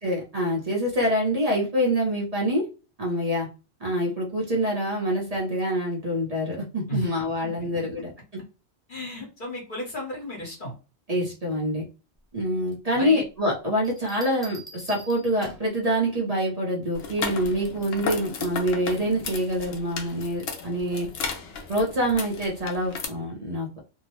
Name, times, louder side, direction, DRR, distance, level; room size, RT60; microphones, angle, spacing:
voice 1, 0.0-2.7 3.0-3.5 3.8-8.1 11.1-11.9 12.3-21.1 21.7-23.8, equal, 40° right, -3 dB, 0.8 m, -26 dB
voice 2, 8.9-10.7 12.9-13.2, left 1 dB, 50° left, -2 dB, 1.2 m, -34 dB
Bell, 13.8-15.8 17.4-17.7, right 1 dB, ahead, 0.5 m, -45 dB
sound 1, 16.9-23.0, left 5 dB, 70° left, 0.8 m, -35 dB
2.7 x 2.1 x 3.0 m, 0.32 s
omnidirectional pair, 1.1 m